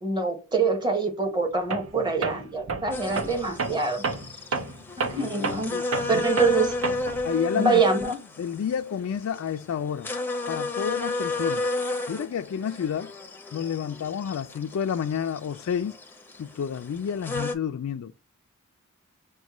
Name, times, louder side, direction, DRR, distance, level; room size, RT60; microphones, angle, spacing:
voice 1, 0.0-4.1 5.0-5.8 6.1-6.8 7.5-8.2, right 4 dB, 20° right, 1.0 m, -25 dB
Tools, 1.7-1.9 2.2-7.3, right 4 dB, 75° right, 0.7 m, -31 dB
sound 1, 2.9-17.5, left 2 dB, 10° left, 0.5 m, -32 dB
voice 2, 7.2-8.0 8.4-10.1 10.5-11.7 12.1-13.1 13.5-16.0 16.4-18.1, left 8 dB, 80° left, 0.3 m, -30 dB
6.2 x 2.2 x 2.9 m
head